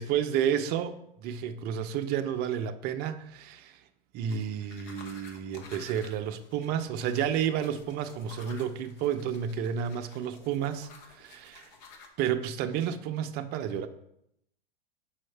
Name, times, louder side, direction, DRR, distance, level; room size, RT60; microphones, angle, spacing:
voice 1, 0.0-3.8 4.1-11.7 12.2-13.9, right 9 dB, 35° right, 7 dB, 0.6 m, -31 dB
sound 1, 4.3-12.1, left 4 dB, 50° left, 1.1 m, -52 dB
7.5 x 5.6 x 3.3 m, 0.76 s
hypercardioid pair, 125°, 29 cm